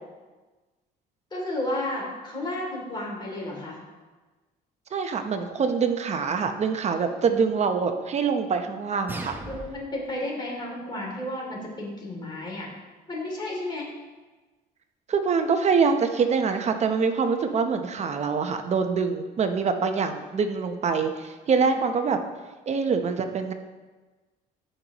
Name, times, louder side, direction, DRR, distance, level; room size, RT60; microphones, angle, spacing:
voice 1, 1.3-3.8 9.4-12.7 13.1-13.9, left 1 dB, 25° left, -3 dB, 2.8 m, -32 dB
voice 2, 4.9-9.3 15.1-22.2 22.7-23.5, right 5 dB, 40° right, 6 dB, 0.8 m, -25 dB
sound 1, 9.1-10.1, right 2 dB, 10° right, 0.7 m, -38 dB
14.0 x 5.5 x 3.0 m, 1.2 s
cardioid pair, 110°, 17 cm